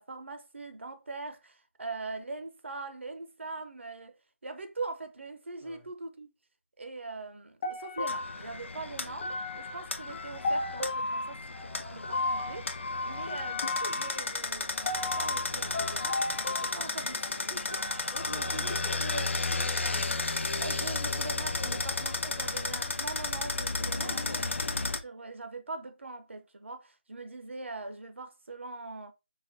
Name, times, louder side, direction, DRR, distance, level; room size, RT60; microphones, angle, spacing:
voice 1, 0.0-4.1 4.4-6.3 6.8-12.6 13.0-19.3 20.6-24.5 25.0-29.1, right 3 dB, 85° right, 0.6 m, -42 dB
sound 1, 7.6-18.9, left 2 dB, 30° left, 0.8 m, -35 dB
sound 2, 8.1-25.0, left 3 dB, 85° left, 0.5 m, -33 dB
voice 2, 18.1-19.0 19.4-20.5 20.8-21.1 21.7-21.8 24.0-24.5, left 1 dB, 5° left, 0.4 m, -45 dB
4.1 x 2.1 x 2.6 m
figure-of-eight pair, 170°, 6 cm